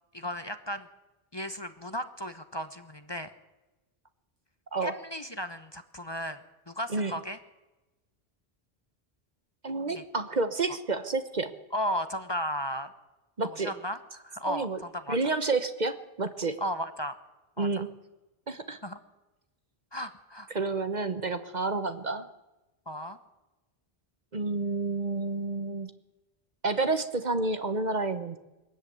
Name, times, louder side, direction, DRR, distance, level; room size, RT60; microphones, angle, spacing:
voice 1, 0.1-0.9 1.3-3.3 4.8-6.4 6.7-7.4 9.9-10.0 11.7-12.9 13.4-15.2 16.6-17.1 17.6-17.8 18.8-19.0 19.9-20.5 22.9-23.2, equal, 25° left, 10 dB, 1.0 m, -35 dB
voice 2, 9.6-11.5 13.4-13.7 14.5-14.8 15.1-16.6 17.6-17.9 18.5-18.8 20.5-22.3 24.3-25.9 26.6-28.4, right 3 dB, 45° right, 10 dB, 1.2 m, -30 dB
22.0 x 13.5 x 9.3 m, 1.1 s
omnidirectional pair, 1.1 m